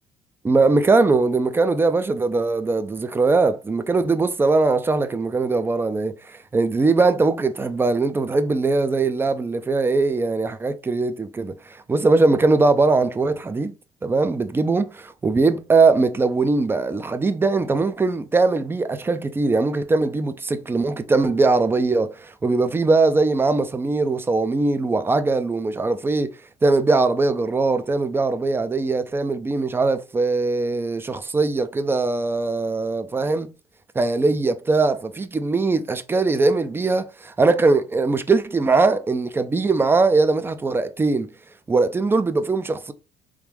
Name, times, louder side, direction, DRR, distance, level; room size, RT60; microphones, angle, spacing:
voice 1, 0.4-11.5 11.9-13.7 14.0-26.3 26.6-33.5 34.0-41.3 41.7-42.9, right 3 dB, 20° right, 0.4 m, -21 dB
3.2 x 2.5 x 3.3 m
supercardioid pair, 95°, 12 cm